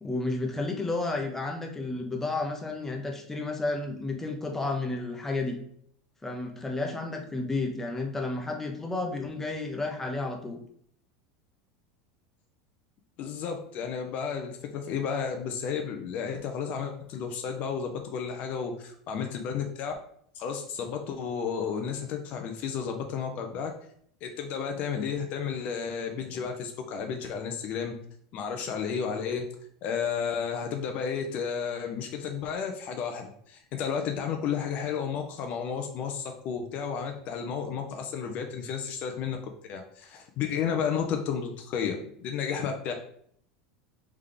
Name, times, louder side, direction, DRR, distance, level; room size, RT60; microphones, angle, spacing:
voice 1, 0.0-5.6 6.2-10.6, left 2 dB, 10° left, 1 dB, 0.8 m, -32 dB
voice 2, 13.2-19.9 20.3-23.7 24.2-27.9 28.3-29.4 29.8-39.4 39.7-42.0 42.2-42.9, left 7 dB, 50° left, 4 dB, 0.6 m, -32 dB
3.5 x 3.2 x 3.8 m, 0.65 s
supercardioid pair, 105°, 3 cm